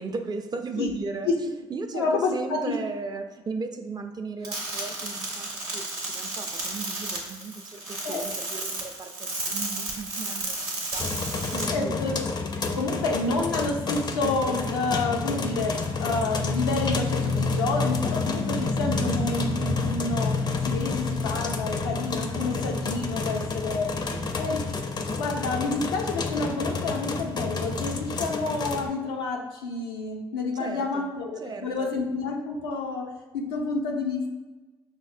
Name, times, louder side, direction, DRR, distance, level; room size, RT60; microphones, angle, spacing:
voice 1, 0.0-1.3 1.7-12.0 24.0-24.4 30.6-31.1 31.4-31.9, right 4 dB, 35° right, 6 dB, 0.4 m, -36 dB
voice 2, 1.9-2.7 8.0-8.3 11.6-12.2 12.7-24.7 25.2-34.3, left 3 dB, 90° left, 1 dB, 0.5 m, -29 dB
sound 1, 4.4-11.6, right 2 dB, 85° right, 0.7 m, -33 dB
sound 2, 11.0-28.9, left 3 dB, 35° left, 0.4 m, -29 dB
5.6 x 2.0 x 2.5 m, 1.2 s
hypercardioid pair, 50°, 13 cm